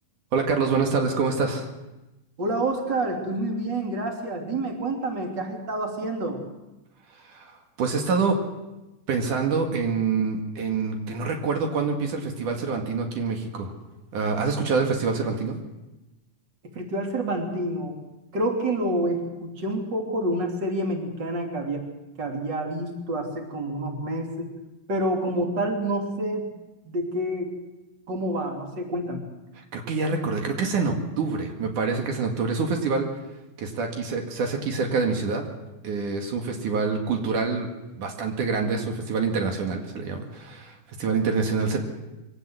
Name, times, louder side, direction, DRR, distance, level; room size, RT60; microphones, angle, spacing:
voice 1, 0.3-1.7 7.3-7.5 7.8-8.4 9.1-13.7 14.1-15.6 29.7-33.1 33.6-35.4 35.8-37.7 38.0-41.8, right 4 dB, 75° right, 3 dB, 3.6 m, -26 dB
voice 2, 2.4-6.4 16.7-17.9 18.3-21.9 22.2-24.5 24.9-26.5 26.9-27.5 28.1-29.2, right 1 dB, 35° right, 2 dB, 3.5 m, -28 dB
23.5 x 18.0 x 7.7 m, 1.0 s
omnidirectional pair, 3.6 m